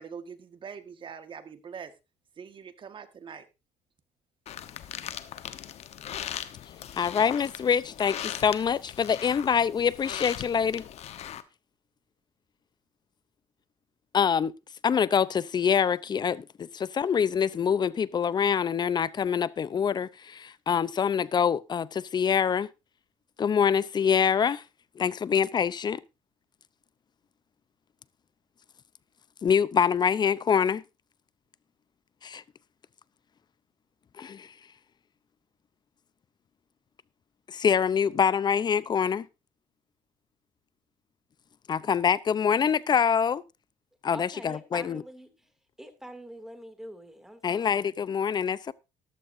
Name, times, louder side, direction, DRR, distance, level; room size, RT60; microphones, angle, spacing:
voice 1, 0.0-1.9 2.4-3.5, right 6 dB, 45° right, 1.7 m, -43 dB
sound 1, 4.5-11.4, left 10 dB, 60° left, 1.1 m, -39 dB
voice 2, 6.9-10.8 14.1-14.5 14.8-22.7 23.4-24.6 25.0-26.0 29.4-30.8 32.2-32.4 34.2-34.5 37.5-39.3 41.7-43.4 44.0-45.0 47.4-48.7, left 7 dB, 35° left, 0.7 m, -25 dB
voice 3, 44.1-45.3 45.8-47.8, right 1 dB, 5° right, 2.6 m, -45 dB
14.0 x 12.0 x 2.7 m
cardioid pair, 95°, 12 cm